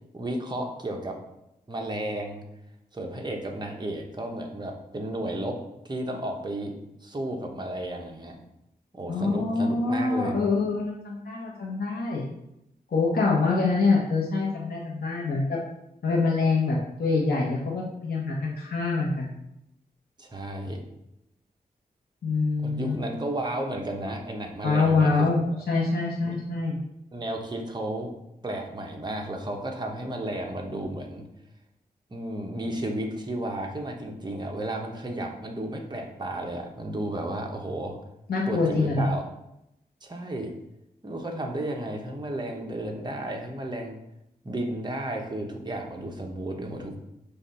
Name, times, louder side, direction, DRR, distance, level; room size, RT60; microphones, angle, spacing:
voice 1, 0.1-1.2 1.7-2.5 2.9-8.4 8.9-10.4 20.2-20.8 22.6-25.3 26.3-26.4 27.1-28.1 28.4-31.3 32.1-38.0 38.5-39.2 40.0-40.5 41.0-44.0 44.4-47.0, right 1 dB, 25° right, 1 dB, 1.0 m, -33 dB
voice 2, 9.1-12.2 12.9-15.6 16.0-19.3 22.2-23.0 24.6-26.8 38.3-39.1, left 3 dB, 80° left, -4 dB, 1.2 m, -25 dB
6.9 x 2.6 x 5.5 m, 0.84 s
wide cardioid pair, 105°, 16 cm